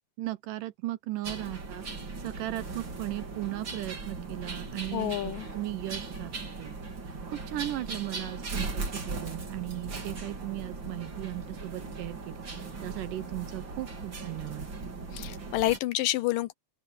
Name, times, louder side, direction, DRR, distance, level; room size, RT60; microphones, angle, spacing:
voice 1, 0.2-1.9 2.2-6.3 6.6-6.8 7.3-12.4 12.8-14.7, right 16 dB, 75° right, 2.2 m, -37 dB
sound 1, 1.2-15.8, right 3 dB, 30° right, 3.6 m, -38 dB
voice 2, 4.9-5.5 15.1-16.5, left 15 dB, 75° left, 2.3 m, -28 dB
open air
omnidirectional pair, 4.2 m